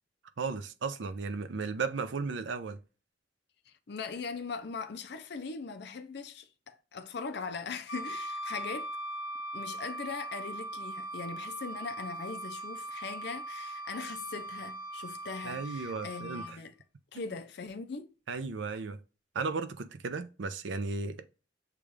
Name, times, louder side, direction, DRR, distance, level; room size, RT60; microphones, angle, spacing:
voice 1, 0.4-2.8 15.4-16.4 17.1-17.2 18.3-19.0 19.3-21.3, right 4 dB, 65° right, 0.5 m, -35 dB
voice 2, 3.7-8.9 9.5-16.7 17.1-18.1, left 5 dB, 55° left, 0.5 m, -40 dB
Wind instrument woodwind instrument, 7.9-16.5, right 1 dB, 85° left, 0.8 m, -40 dB
6.8 x 2.4 x 3.2 m
head